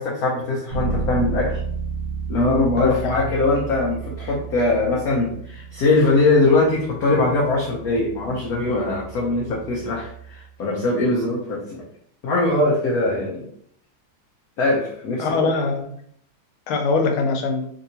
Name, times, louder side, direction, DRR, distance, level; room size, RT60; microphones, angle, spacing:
voice 1, 0.0-1.6 2.3-11.8 12.2-13.5 14.6-15.5, left 2 dB, 65° left, -3 dB, 0.9 m, -21 dB
Bass guitar, 0.7-10.5, right 5 dB, 45° right, 0.9 m, -32 dB
voice 2, 2.8-3.2 15.2-15.9 16.7-17.7, left 4 dB, 85° left, 4 dB, 1.5 m, -22 dB
3.4 x 2.8 x 2.7 m, 0.64 s
omnidirectional pair, 2.3 m